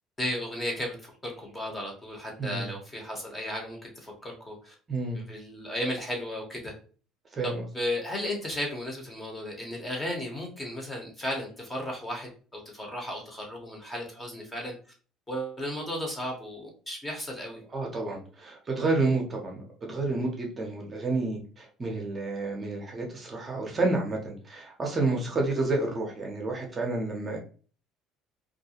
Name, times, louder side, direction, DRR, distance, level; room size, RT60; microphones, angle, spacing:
voice 1, 0.2-4.7 5.1-6.7 7.4-14.7 15.3-17.6, left 1 dB, 15° left, 0 dB, 0.8 m, -35 dB
voice 2, 4.9-5.2 7.4-7.6 17.7-27.4, right 3 dB, 25° right, 0 dB, 0.6 m, -30 dB
2.3 x 2.1 x 2.7 m, 0.39 s
cardioid pair, 135°, 0 cm